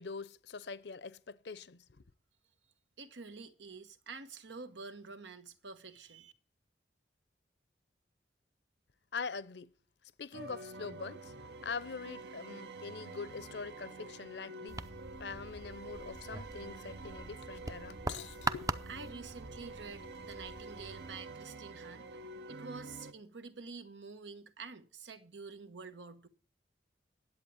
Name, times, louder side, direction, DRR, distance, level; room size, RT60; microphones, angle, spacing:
voice 1, 0.0-1.8 9.1-9.7 10.2-11.3 11.6-14.8 15.2-18.6, left 5 dB, 70° left, 0.7 m, -43 dB
voice 2, 3.0-6.3 18.9-22.1 22.5-26.3, right 4 dB, 90° right, 1.2 m, -48 dB
sound 1, 10.3-23.1, right 3 dB, 70° right, 0.9 m, -48 dB
sound 2, 14.7-21.2, right 3 dB, 20° right, 0.5 m, -42 dB
10.5 x 8.3 x 7.1 m
head